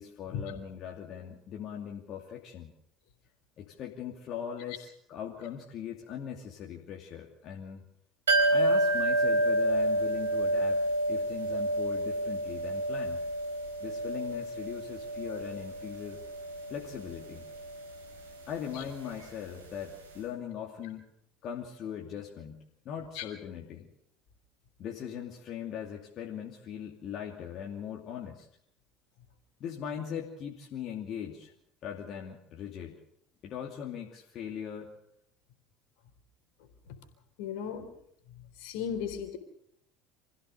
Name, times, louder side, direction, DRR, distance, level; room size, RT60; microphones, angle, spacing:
voice 1, 0.0-2.7 3.6-7.9 8.5-10.8 11.1-13.2 13.8-16.2 16.7-17.5 18.5-21.1 21.4-23.9 24.8-28.5 29.6-31.5 31.8-33.0 33.4-34.9, left 8 dB, 50° left, 0 dB, 2.7 m, -40 dB
sound 1, 8.3-19.9 20.1-20.2, right 1 dB, 80° right, 4.1 m, -30 dB
voice 2, 37.4-37.9 38.6-39.4, left 8 dB, 65° left, 7 dB, 3.8 m, -35 dB
26.5 x 15.5 x 6.7 m, 0.72 s
figure-of-eight pair, 65°, 0 cm